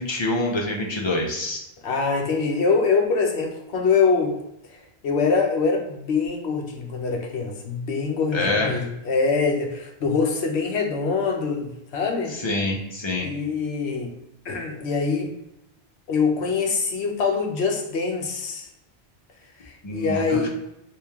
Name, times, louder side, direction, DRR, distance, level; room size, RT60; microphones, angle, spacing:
voice 1, 0.0-1.6 8.3-8.8 12.4-13.3 19.8-20.5, left 2 dB, 30° left, -1 dB, 0.7 m, -26 dB
voice 2, 1.8-4.4 5.0-12.4 13.2-14.1 14.4-15.3 16.1-18.7 19.7-20.5, left 4 dB, 85° left, 2 dB, 1.0 m, -24 dB
3.1 x 2.8 x 3.5 m, 0.86 s
omnidirectional pair, 1.1 m